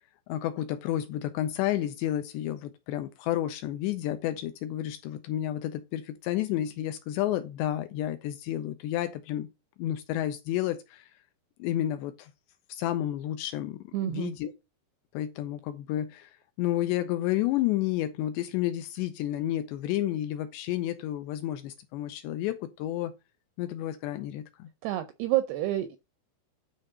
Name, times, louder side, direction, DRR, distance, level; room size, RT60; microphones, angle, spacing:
voice 1, 0.3-9.5 9.8-11.1 11.6-12.3 12.7-14.5 15.1-16.3 16.6-23.1 23.6-24.7, left 13 dB, 80° left, 2.6 m, -31 dB
voice 2, 13.9-14.3 24.8-26.0, right 14 dB, 80° right, 2.3 m, -28 dB
9.7 x 3.9 x 6.5 m
omnidirectional pair, 5.4 m